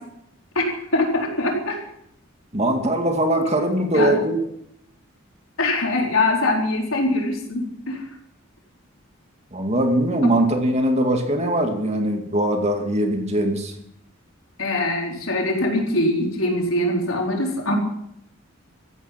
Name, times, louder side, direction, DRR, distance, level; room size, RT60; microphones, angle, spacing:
voice 1, 0.6-1.8 3.9-4.2 5.6-8.0 14.6-17.7, left 2 dB, 80° left, 0 dB, 4.2 m, -23 dB
voice 2, 2.5-4.4 9.5-13.7, right 1 dB, 30° right, 4 dB, 2.4 m, -21 dB
16.5 x 14.5 x 6.0 m, 0.77 s
head